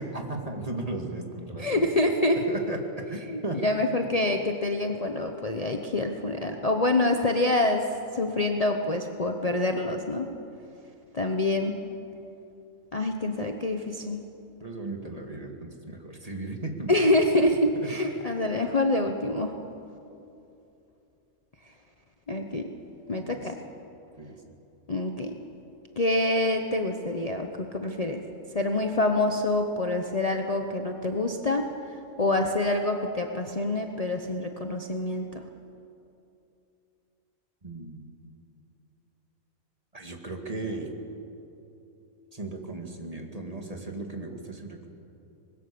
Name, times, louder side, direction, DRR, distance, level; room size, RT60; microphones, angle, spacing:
voice 1, 0.0-1.9 2.5-2.8 3.1-3.7 14.6-17.0 18.0-18.1 23.2-23.4 24.2-24.4 37.6-38.2 39.9-40.9 42.3-44.9, right 2 dB, 25° right, 2 dB, 2.2 m, -36 dB
voice 2, 1.6-2.4 3.3-7.9 8.1-10.3 11.1-11.8 12.9-14.2 16.9-19.6 22.3-22.7 23.1-23.6 24.9-25.4 26.0-28.2 28.5-31.7 32.2-35.4, left 2 dB, 30° left, 3 dB, 1.0 m, -26 dB
24.5 x 21.0 x 6.9 m, 2.8 s
omnidirectional pair, 1.5 m